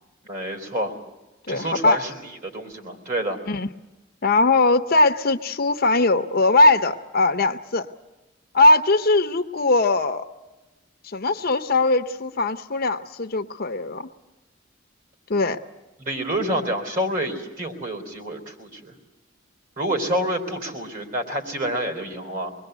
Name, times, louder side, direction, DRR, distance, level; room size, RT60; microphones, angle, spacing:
voice 1, 0.3-1.0 1.5-3.4 16.0-18.9 19.8-22.6, right 1 dB, 45° right, 5 dB, 3.8 m, -28 dB
voice 2, 1.5-2.0 3.5-3.7 4.2-7.9 8.5-10.2 11.0-14.1 15.3-15.6, left 2 dB, 50° left, 8 dB, 0.8 m, -20 dB
25.0 x 21.5 x 8.1 m, 1.1 s
head